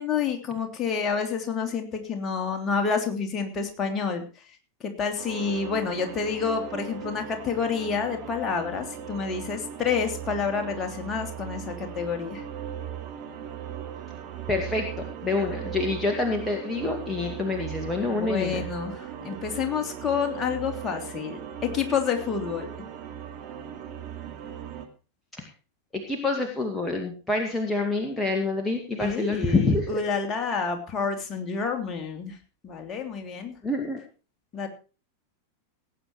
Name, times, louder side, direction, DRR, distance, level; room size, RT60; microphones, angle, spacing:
voice 1, 0.0-4.2 4.8-12.4 18.1-22.7 29.0-32.4 32.6-33.5 34.5-34.7, left 6 dB, 25° left, 3 dB, 3.0 m, -29 dB
sound 1, 5.2-24.8, right 9 dB, 35° right, 2.6 m, -38 dB
voice 2, 14.5-14.9 15.2-18.6 25.4-25.5 25.9-29.9 33.6-34.0, left 3 dB, 10° left, 1 dB, 2.2 m, -27 dB
18.5 x 8.9 x 4.6 m, 0.35 s
figure-of-eight pair, 90°, 0 cm